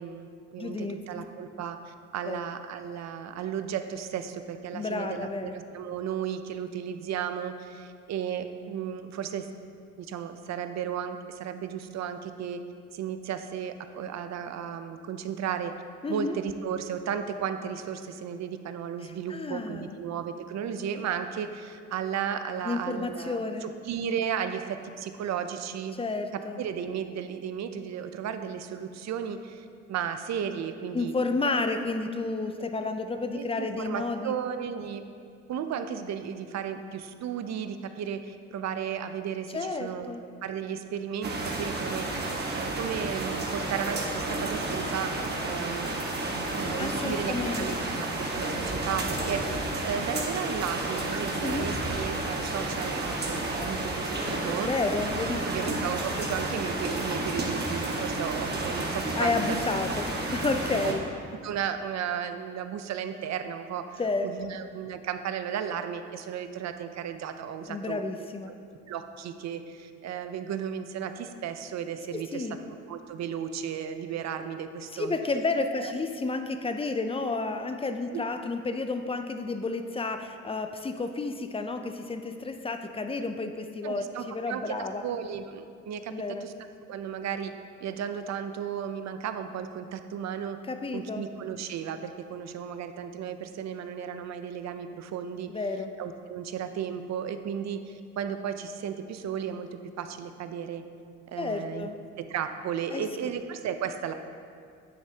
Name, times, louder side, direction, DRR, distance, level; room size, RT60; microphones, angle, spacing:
voice 1, 0.0-9.5 10.0-12.6 12.9-15.7 16.1-26.0 26.3-31.1 31.4-31.6 33.3-35.0 35.5-40.1 40.4-45.2 45.4-45.9 46.6-54.7 55.4-59.6 60.2-60.4 60.8-60.9 61.4-68.6 68.9-72.5 72.9-75.1 75.7-75.9 78.1-78.2 83.8-86.1 86.4-86.5 86.9-87.5 87.8-90.6 90.9-95.5 96.0-99.7 100.0-100.8 101.3-101.9 102.2-104.1, right 8 dB, 60° right, 9 dB, 0.6 m, -34 dB
voice 2, 0.6-1.3 2.3-2.4 4.7-5.6 16.0-16.4 19.0-20.0 22.6-23.7 25.9-26.6 30.9-34.4 39.5-40.2 46.8-47.8 51.4-51.7 54.6-55.7 59.1-61.0 64.0-64.6 67.7-68.5 72.1-72.6 74.9-85.0 86.1-86.4 90.6-91.3 95.5-95.9 101.4-102.0 102.9-103.3, left 3 dB, 20° left, 7 dB, 0.5 m, -31 dB
sound 1, 41.2-60.9, right 2 dB, 35° right, 1.4 m, -31 dB
9.8 x 7.9 x 2.9 m, 2.3 s
cardioid pair, 90°, 30 cm